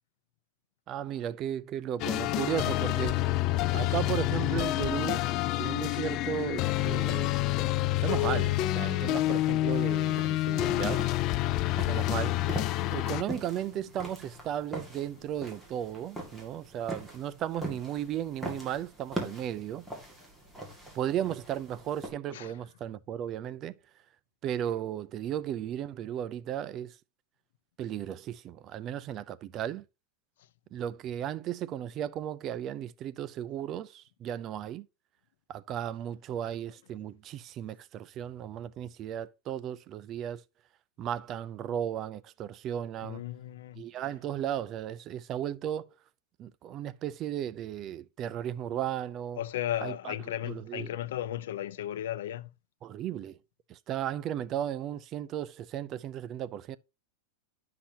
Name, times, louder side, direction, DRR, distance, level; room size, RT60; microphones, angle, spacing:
voice 1, 0.9-3.2 3.7-5.3 5.6-7.3 7.9-11.1 11.7-12.4 12.9-19.8 20.9-23.8 24.4-27.0 27.8-29.8 30.7-34.9 35.5-40.4 41.0-43.2 43.7-45.9 46.4-49.4 49.8-50.1 50.4-50.9 52.8-53.4 53.7-56.8, right 10 dB, 30° right, 0.5 m, -35 dB
sound 1, 2.0-13.2, left 16 dB, 40° left, 0.4 m, -28 dB
sound 2, 9.7-22.1, right 1 dB, ahead, 2.0 m, -42 dB
voice 2, 22.3-22.7 36.4-36.5 43.0-43.8 49.3-52.5, left 12 dB, 75° left, 0.7 m, -35 dB
11.5 x 5.8 x 2.8 m
supercardioid pair, 145°, 0 cm